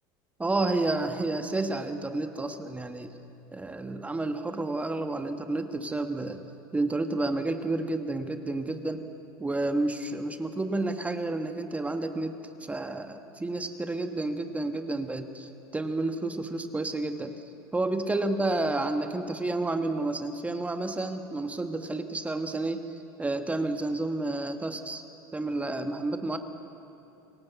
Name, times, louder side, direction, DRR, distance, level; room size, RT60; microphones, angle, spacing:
voice 1, 0.4-3.1 3.5-6.4 6.7-9.0 9.4-17.3 17.7-22.8 23.2-25.0 25.3-26.4, right 2 dB, 10° right, 7 dB, 1.5 m, -30 dB
28.5 x 17.5 x 8.2 m, 2.9 s
supercardioid pair, 110°, 11 cm